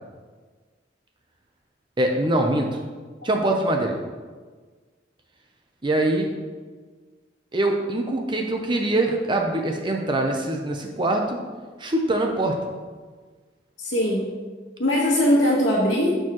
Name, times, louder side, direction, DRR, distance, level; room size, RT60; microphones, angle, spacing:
voice 1, 2.0-2.8 3.2-4.0 5.8-6.3 7.5-11.4 11.8-12.6, right 1 dB, 25° right, 2 dB, 0.6 m, -23 dB
voice 2, 13.8-14.3 14.8-16.2, left 1 dB, 70° left, -6 dB, 1.3 m, -21 dB
12.0 x 4.5 x 3.0 m, 1.4 s
head